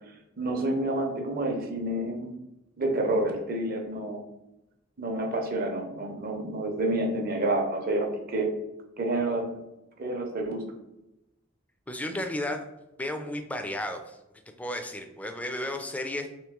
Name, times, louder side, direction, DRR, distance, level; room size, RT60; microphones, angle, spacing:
voice 1, 0.4-2.3 2.8-4.2 5.0-8.5 9.0-9.5 10.0-10.6, right 1 dB, 45° right, 3 dB, 0.6 m, -28 dB
voice 2, 11.9-12.7 13.0-14.2 14.6-16.3, left 1 dB, 5° left, 6 dB, 0.3 m, -33 dB
3.0 x 3.0 x 3.5 m, 0.91 s
head